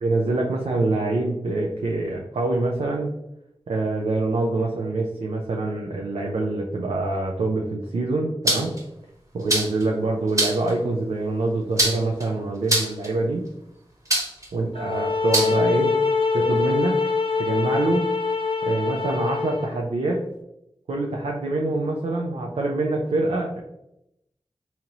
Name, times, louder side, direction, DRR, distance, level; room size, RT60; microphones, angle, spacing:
voice 1, 0.0-3.1 3.7-8.7 9.3-13.4 14.5-15.9 16.3-17.0 17.4-18.1 18.6-20.2 20.9-23.6, right 2 dB, 90° right, 0 dB, 0.4 m, -25 dB
sound 1, 8.5-8.8 9.5-9.8 10.4-10.7 11.8-12.2 12.7-13.1 14.1-14.5 15.3-15.5, right 1 dB, 35° right, 1.1 m, -22 dB
sound 2, 14.7-19.7, left 4 dB, 60° left, 0.4 m, -24 dB
3.8 x 2.8 x 2.9 m, 0.84 s
cardioid pair, 45°, 10 cm